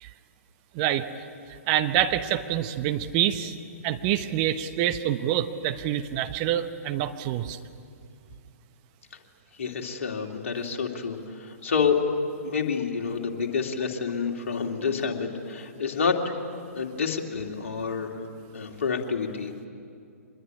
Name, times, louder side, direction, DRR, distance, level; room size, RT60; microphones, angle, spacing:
voice 1, 0.7-1.1 1.7-3.6 3.8-7.6, right 11 dB, 30° right, 8 dB, 1.0 m, -26 dB
voice 2, 9.6-12.0 12.4-16.2 16.7-18.1 18.5-19.7, left 6 dB, 55° left, 2 dB, 2.9 m, -28 dB
25.5 x 21.0 x 9.8 m, 2.4 s
figure-of-eight pair, 120°, 8 cm